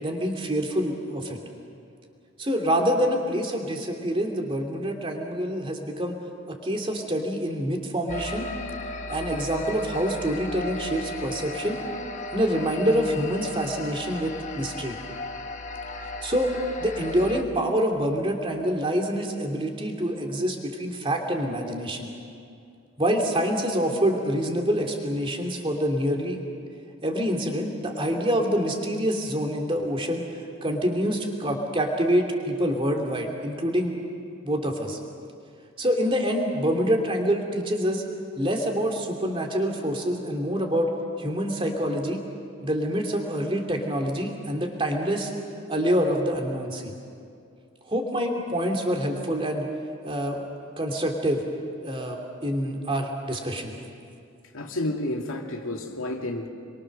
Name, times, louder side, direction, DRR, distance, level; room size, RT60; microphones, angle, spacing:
voice 1, 0.0-1.4 2.4-6.2 6.5-8.5 9.1-11.8 12.3-15.0 16.2-16.5 16.8-22.1 23.0-26.4 27.0-30.3 30.6-34.0 34.4-35.0 35.8-38.0 38.4-40.9 41.2-42.2 42.6-45.3 45.7-46.9 47.9-49.7 50.0-50.4 50.8-51.4 51.8-53.7, equal, 25° right, 2 dB, 2.8 m, -26 dB
sound 1, 8.1-17.4, left 2 dB, 35° left, 1.2 m, -36 dB
voice 2, 54.5-56.5, left 1 dB, 75° left, 2 dB, 2.4 m, -30 dB
27.5 x 23.5 x 6.6 m, 2.4 s
head